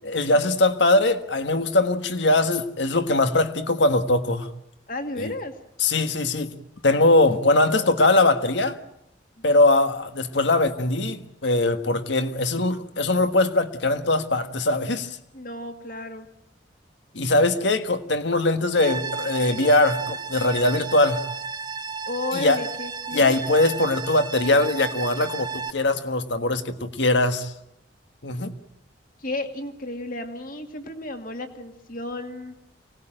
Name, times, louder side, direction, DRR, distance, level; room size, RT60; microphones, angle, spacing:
voice 1, 0.0-4.5 5.2-5.3 5.8-6.5 6.8-8.8 9.4-15.2 17.1-21.2 22.3-22.6 23.1-27.5 28.2-28.5, left 2 dB, 75° left, 9 dB, 1.5 m, -21 dB
voice 2, 4.9-5.5 15.3-16.3 22.1-23.4 29.2-32.5, left 2 dB, 50° left, 6 dB, 2.2 m, -33 dB
sound 1, 18.7-25.7, right 5 dB, 25° right, 1.1 m, -33 dB
24.5 x 19.0 x 9.0 m, 0.82 s
head